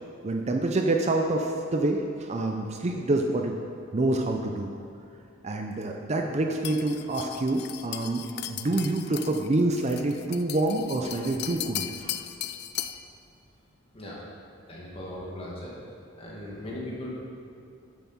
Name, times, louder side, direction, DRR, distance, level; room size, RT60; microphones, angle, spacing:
voice 1, 0.2-3.5 3.9-4.7 5.4-11.9, right 2 dB, 35° right, 3 dB, 0.5 m, -27 dB
sound 1, 6.6-13.1, left 12 dB, 50° left, 0.4 m, -37 dB
voice 2, 13.9-14.2 14.7-15.7 16.1-17.3, left 1 dB, 30° left, -5 dB, 2.0 m, -38 dB
10.5 x 7.4 x 4.2 m, 2.6 s
head